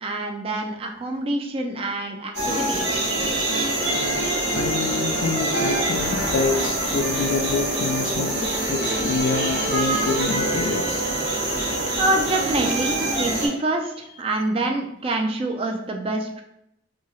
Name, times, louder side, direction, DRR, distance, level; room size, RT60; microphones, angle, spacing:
voice 1, 0.0-3.1 12.0-13.9 14.2-16.4, right 2 dB, 30° right, 3 dB, 0.3 m, -26 dB
sound 1, 2.3-13.5, right 1 dB, 70° right, 0.9 m, -24 dB
voice 2, 4.5-11.1, left 4 dB, 75° left, 7 dB, 0.3 m, -27 dB
2.7 x 2.3 x 3.0 m, 0.80 s
head